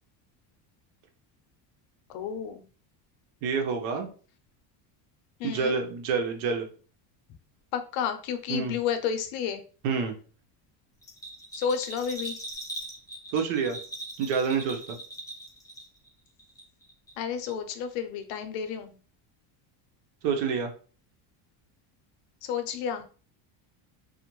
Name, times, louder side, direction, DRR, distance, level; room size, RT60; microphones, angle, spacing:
voice 1, 2.1-2.7 5.4-5.7 7.7-9.6 11.5-12.4 17.2-19.0 22.4-23.1, left 7 dB, 70° left, 8 dB, 0.6 m, -31 dB
voice 2, 3.4-4.1 5.4-6.7 8.5-8.8 9.8-10.1 13.3-13.8 14.2-15.0 20.2-20.7, right 5 dB, 75° right, 4 dB, 0.8 m, -27 dB
Bell, 11.0-16.1 16.4-17.2 17.5-17.6, right 1 dB, 5° left, 0.4 m, -40 dB
2.4 x 2.1 x 3.0 m, 0.39 s
cardioid pair, 150°, 50 cm